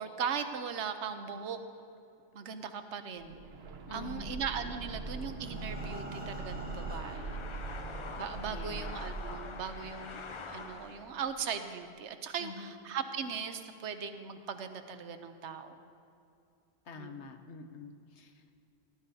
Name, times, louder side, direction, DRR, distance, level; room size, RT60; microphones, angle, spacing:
voice 1, 0.0-1.6 2.3-3.4 3.9-7.4 8.2-15.8 16.9-17.2, right 6 dB, 85° right, 8 dB, 1.0 m, -39 dB
sound 1, 3.2-11.0 11.3-11.4, right 3 dB, 65° right, 1.0 m, -42 dB
voice 2, 3.9-4.3 8.4-9.0 12.4-12.8 16.8-18.6, left 4 dB, 80° left, 6 dB, 1.2 m, -46 dB
sound 2, 4.1-11.2, left 4 dB, 40° left, 0.4 m, -47 dB
Breathing, 4.6-7.5 8.3-8.4 8.8-8.9 9.3-9.4, equal, 10° right, 1.4 m, -48 dB
18.0 x 12.0 x 2.7 m, 2.6 s
omnidirectional pair, 1.1 m